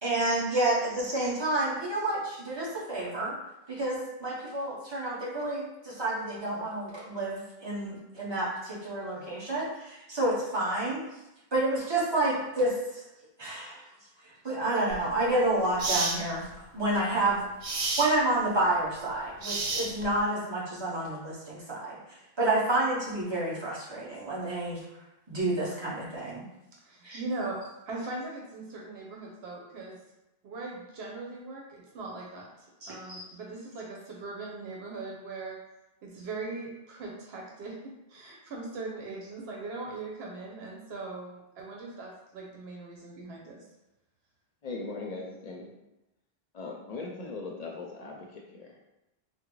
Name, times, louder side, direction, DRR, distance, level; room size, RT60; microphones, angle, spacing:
voice 1, 0.0-3.3 3.7-11.0 11.5-12.7 13.4-13.8 14.4-16.5 16.7-17.5 18.0-21.9 22.4-24.8 25.3-26.4 27.0-27.2 32.8-33.3, right 2 dB, 30° right, -6 dB, 0.9 m, -29 dB
sound 1, 14.9-15.1 15.8-16.2 17.6-18.1 19.4-20.2, right 3 dB, 50° right, 0.4 m, -30 dB
voice 2, 26.8-27.6 27.9-30.0 30.4-35.6 36.0-37.7 38.1-43.6, right 3 dB, 85° right, -2 dB, 0.9 m, -40 dB
voice 3, 44.6-45.7 46.5-48.8, left 3 dB, 50° left, -1 dB, 0.5 m, -39 dB
3.6 x 2.0 x 3.0 m, 0.94 s
omnidirectional pair, 1.0 m